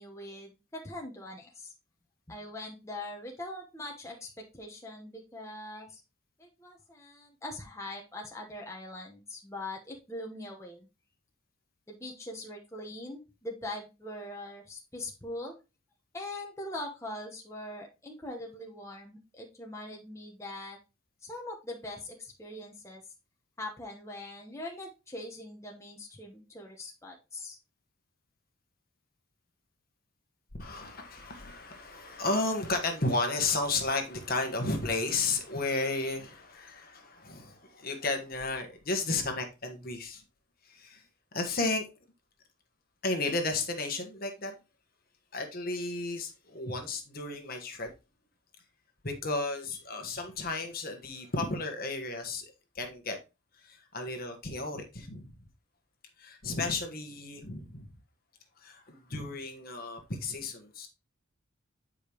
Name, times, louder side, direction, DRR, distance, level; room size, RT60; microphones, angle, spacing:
voice 1, 0.0-1.7 2.3-6.0 6.4-10.9 11.9-15.5 16.1-20.8 21.2-23.0 23.6-27.6, left 1 dB, 15° left, 1.1 m, -42 dB
voice 2, 30.6-40.2 40.6-41.0 41.3-41.9 43.0-44.5 45.3-47.9 49.0-53.2 53.6-55.3 56.2-57.9 58.6-60.9, left 3 dB, 45° left, 1.4 m, -33 dB
9.0 x 5.1 x 3.0 m
head